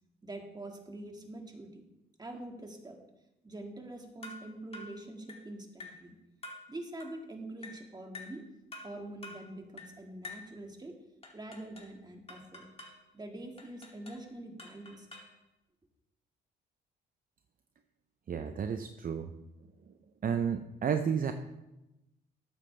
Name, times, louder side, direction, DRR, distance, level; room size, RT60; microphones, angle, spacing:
voice 1, 0.2-1.8 2.2-3.0 3.4-6.2 6.7-8.5 8.8-11.0 11.3-12.7 13.1-15.1, right 1 dB, 20° right, 2 dB, 2.0 m, -45 dB
sound 1, 4.2-4.5 4.7-5.0 5.3-5.5 5.8-6.0 6.4-6.7 7.0-7.2 7.6-7.8 8.1-8.4 8.7-8.9 9.2-9.4 9.8-10.0 10.2-10.5 11.2-11.9 12.3-13.0 13.6-14.2 14.6-15.4, left 2 dB, 30° left, 2.7 m, -47 dB
voice 2, 18.3-19.3 20.2-21.3, right 7 dB, 45° right, 7 dB, 0.7 m, -31 dB
13.0 x 8.8 x 3.4 m, 0.96 s
cardioid pair, 90°, 20 cm